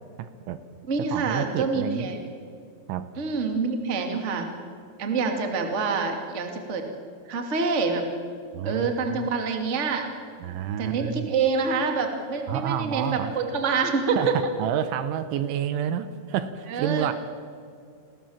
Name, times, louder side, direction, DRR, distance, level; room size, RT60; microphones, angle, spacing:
voice 1, 0.2-0.6 1.1-2.1 2.9-3.1 8.5-9.3 10.4-11.3 12.5-13.3 14.2-17.1, right 10 dB, 75° right, 11 dB, 3.1 m, -29 dB
voice 2, 0.9-2.2 3.2-4.5 5.0-6.8 7.2-8.1 8.6-10.1 10.8-14.4 16.7-17.1, right 4 dB, 25° right, 4 dB, 1.5 m, -26 dB
29.5 x 20.5 x 7.3 m, 2.4 s
omnidirectional pair, 5.9 m